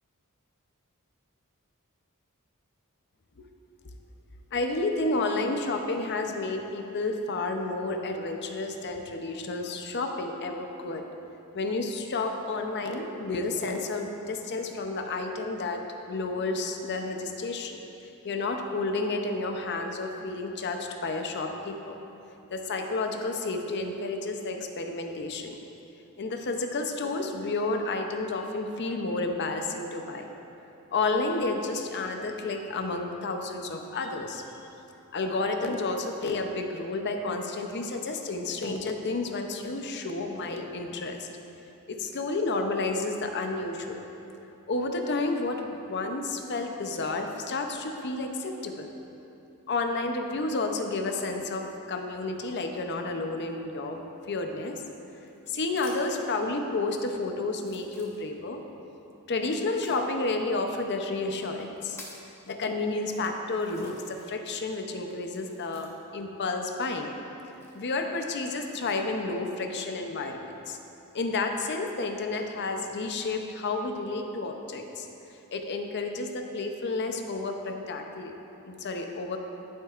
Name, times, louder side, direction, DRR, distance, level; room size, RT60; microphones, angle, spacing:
voice 1, 4.5-11.1 11.5-15.8 16.1-17.8 18.2-22.0 22.5-25.6 26.2-30.3 30.9-34.4 35.1-41.3 41.9-44.0 44.7-48.9 49.7-54.8 55.5-58.6 59.3-62.0 62.5-67.1 67.7-70.8 71.1-75.1 75.5-78.3 78.7-79.4, left 3 dB, 50° left, 4 dB, 0.6 m, -31 dB
sound 1, 54.7-56.3 57.0-57.1 57.5-58.6 59.7-60.0 60.9-61.0 61.5-62.3 63.0-63.1 63.5-64.4 64.7-66.2 67.4-69.0 69.6-70.1, left 1 dB, 10° left, 1.0 m, -51 dB
14.0 x 7.3 x 2.5 m, 2.9 s
head